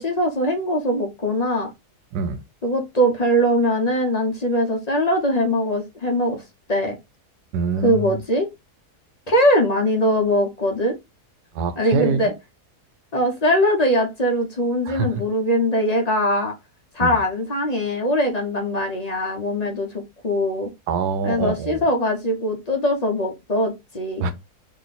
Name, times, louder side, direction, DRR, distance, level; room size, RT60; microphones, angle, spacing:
voice 1, 0.0-1.7 2.6-6.4 6.7-6.9 7.8-8.5 9.3-10.9 11.8-12.3 13.1-16.5 16.9-19.9 20.2-20.7 21.2-24.3, equal, 35° left, 0.8 m, -21 dB
voice 2, 7.5-8.2 11.5-12.3 14.9-15.2 17.0-17.2 20.9-21.8 24.2-24.3, right 5 dB, 85° right, 1.3 m, -25 dB
3.1 x 2.8 x 4.1 m
omnidirectional pair, 1.7 m